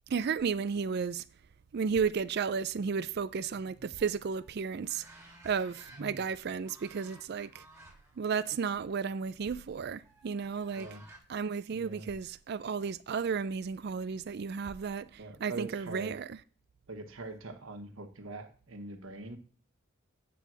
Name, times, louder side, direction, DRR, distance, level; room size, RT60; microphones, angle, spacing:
voice 1, 0.1-1.2 1.7-5.1 5.4-7.6 8.2-10.9 11.3-16.4, right 6 dB, 50° right, 0.4 m, -33 dB
sound 1, 4.0-6.3 6.6-8.2 8.6-8.8 10.0-11.2, right 1 dB, 10° right, 1.6 m, -56 dB
voice 2, 11.7-12.1 15.2-16.1 16.9-19.4, right 3 dB, 70° right, 1.2 m, -43 dB
9.2 x 3.5 x 6.1 m
head